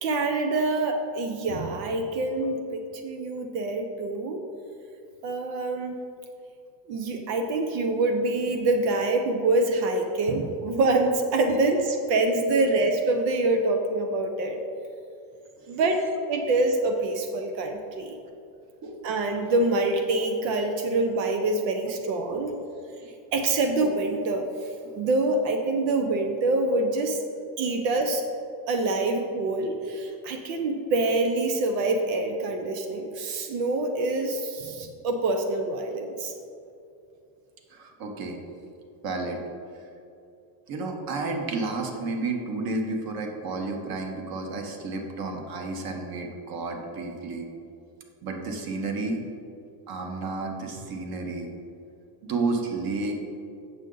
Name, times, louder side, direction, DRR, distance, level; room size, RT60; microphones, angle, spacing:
voice 1, 0.0-4.4 5.2-6.0 6.9-14.6 15.7-16.0 16.3-18.2 19.0-22.5 23.3-24.7 24.9-27.2 27.6-28.2 28.7-36.3, right 2 dB, 90° right, 5 dB, 0.9 m, -25 dB
voice 2, 37.7-38.4 39.0-39.4 40.7-47.5 48.2-49.2 49.9-51.5 52.2-53.1, right 3 dB, 45° right, 3 dB, 1.3 m, -31 dB
8.0 x 6.7 x 3.9 m, 2.6 s
supercardioid pair, 125°, 49 cm